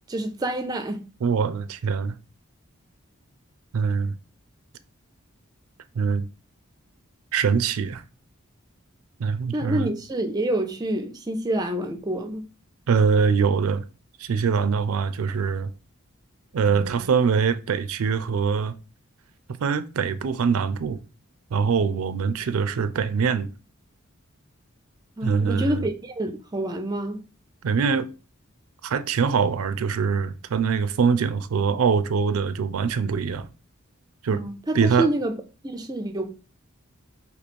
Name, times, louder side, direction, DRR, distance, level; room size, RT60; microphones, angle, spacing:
voice 1, 0.1-1.0 9.5-12.5 25.2-27.2 34.3-35.3 35.6-36.3, right 1 dB, 20° right, 0.4 m, -27 dB
voice 2, 1.2-2.2 3.7-4.2 5.9-6.3 7.3-8.0 9.2-9.9 12.9-13.8 14.2-15.7 16.5-18.7 19.6-21.0 21.5-23.5 25.2-25.9 27.6-28.1 28.8-33.5 34.2-34.4 34.7-35.1, right 6 dB, 85° right, 0.4 m, -23 dB
3.1 x 2.9 x 4.2 m
head